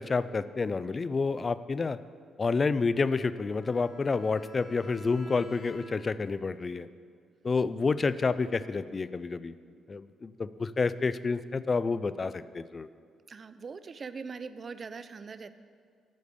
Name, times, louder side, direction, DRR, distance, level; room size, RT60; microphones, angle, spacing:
voice 1, 0.0-2.0 2.4-6.9 7.4-9.5 9.9-12.9, left 4 dB, 35° left, 15 dB, 0.3 m, -29 dB
Bowed string instrument, 3.3-6.3, right 2 dB, 55° left, 2.2 m, -51 dB
voice 2, 13.3-15.5, right 5 dB, 40° right, 13 dB, 0.4 m, -41 dB
9.3 x 5.1 x 6.7 m, 2.2 s
cardioid pair, 90°, 0 cm